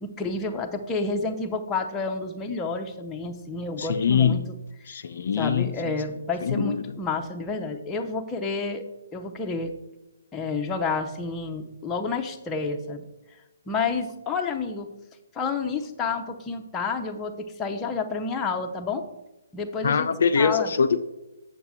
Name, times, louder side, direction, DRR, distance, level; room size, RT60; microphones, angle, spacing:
voice 1, 0.0-4.4 5.4-9.7 10.3-13.0 13.7-14.9 15.3-19.0 19.5-20.1 20.4-20.7, left 4 dB, 15° left, 3 dB, 0.7 m, -30 dB
voice 2, 3.8-4.5 4.9-5.7 6.4-6.8 19.8-21.0, left 6 dB, 55° left, 9 dB, 0.4 m, -23 dB
8.1 x 7.2 x 3.6 m, 1.0 s
figure-of-eight pair, 135°, 0 cm